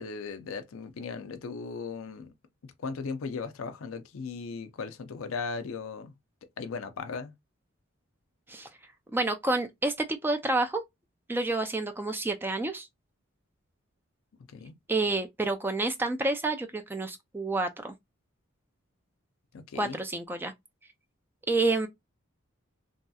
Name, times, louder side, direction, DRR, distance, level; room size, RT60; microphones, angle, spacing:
voice 1, 0.0-2.3 2.6-6.1 6.6-7.3 14.5-14.7 19.5-20.0, left 4 dB, 75° left, 0.5 m, -37 dB
voice 2, 9.1-10.8 11.3-12.9 14.9-17.9 19.8-20.5 21.5-21.9, right 2 dB, 10° right, 0.3 m, -29 dB
3.1 x 2.7 x 2.2 m
head